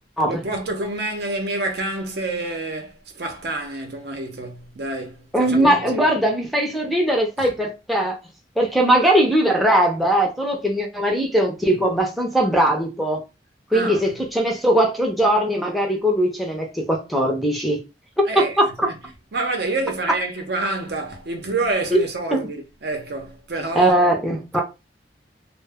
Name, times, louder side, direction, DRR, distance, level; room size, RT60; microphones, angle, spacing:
voice 1, 0.3-6.1 7.4-7.5 13.7-14.1 18.3-19.0 19.3-24.2, right 2 dB, 65° right, 0.6 m, -28 dB
voice 2, 5.3-8.2 8.6-13.2 13.7-17.8 18.4-18.7 21.9-22.0 22.3-22.4 23.8-24.6, right 1 dB, ahead, 0.5 m, -20 dB
2.1 x 2.1 x 3.4 m
head